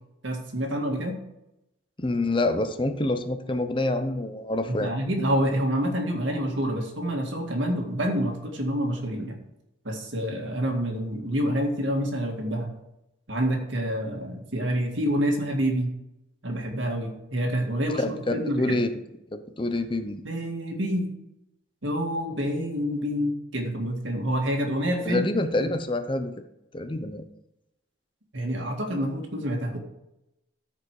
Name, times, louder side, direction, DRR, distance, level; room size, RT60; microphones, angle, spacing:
voice 1, 0.2-1.2 4.8-9.4 9.8-12.7 13.3-15.9 16.4-18.8 20.2-21.1 21.8-25.2 25.6-25.7 28.3-29.8, equal, 70° right, 2 dB, 2.0 m, -27 dB
voice 2, 2.0-4.9 16.6-16.7 18.0-18.9 19.3-20.2 25.0-26.3 26.7-27.2, left 2 dB, 25° left, 8 dB, 0.7 m, -27 dB
13.5 x 5.1 x 4.8 m, 0.88 s
head